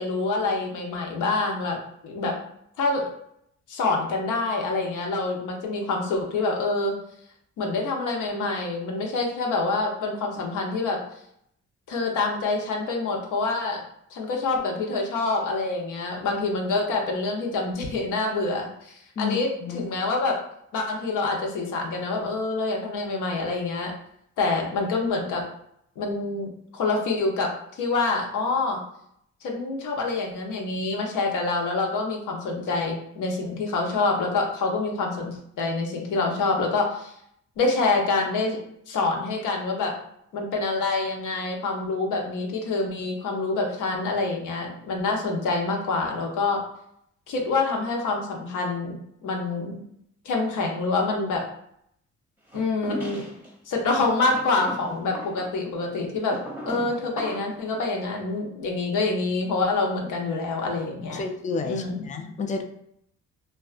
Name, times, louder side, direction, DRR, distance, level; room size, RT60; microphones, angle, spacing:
voice 1, 0.0-1.8 2.0-2.4 2.8-3.0 3.7-7.0 7.6-11.0 11.9-13.8 14.1-20.4 20.7-23.9 24.4-25.4 26.0-28.8 29.4-37.1 37.6-38.6 38.9-40.0 40.3-46.6 47.3-49.8 50.2-51.4 52.5-53.2 53.7-56.4 56.7-61.2 61.6-62.1, left 3 dB, 80° left, 1 dB, 0.7 m, -26 dB
voice 2, 19.2-19.9 61.1-62.6, left 4 dB, 25° left, 4 dB, 0.3 m, -31 dB
sound 1, 52.5-53.5 54.2-57.6, right 1 dB, 5° right, 0.7 m, -37 dB
2.6 x 2.3 x 2.4 m, 0.71 s
cardioid pair, 90°, 30 cm